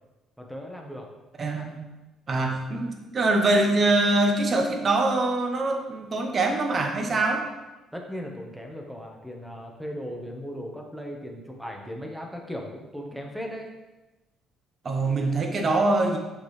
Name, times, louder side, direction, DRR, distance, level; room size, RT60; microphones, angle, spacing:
voice 1, 0.4-1.1 7.9-13.7, equal, 5° right, 1 dB, 1.1 m, -37 dB
voice 2, 1.4-1.8 2.3-7.4 14.8-16.2, right 2 dB, 35° right, 3 dB, 1.0 m, -24 dB
6.7 x 5.3 x 3.3 m, 1.1 s
cardioid pair, 105°, 0 cm